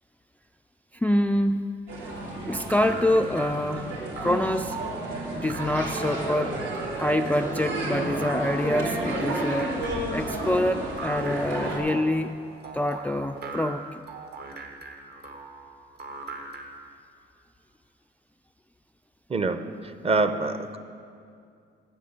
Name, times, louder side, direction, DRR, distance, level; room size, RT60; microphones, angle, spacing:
voice 1, 0.9-1.7 2.5-3.9 4.2-4.8 5.3-6.6 6.9-9.7 10.1-12.4 12.7-14.0, left 1 dB, 10° left, 8 dB, 0.3 m, -26 dB
sound 1, 1.9-11.8, right 1 dB, 80° right, 3.5 m, -32 dB
sound 2, 2.7-16.9, right 3 dB, 55° right, 1.3 m, -41 dB
voice 2, 19.3-20.8, right 3 dB, 30° right, 9 dB, 0.8 m, -26 dB
10.0 x 7.2 x 8.7 m, 2.4 s
cardioid pair, 90°, 20 cm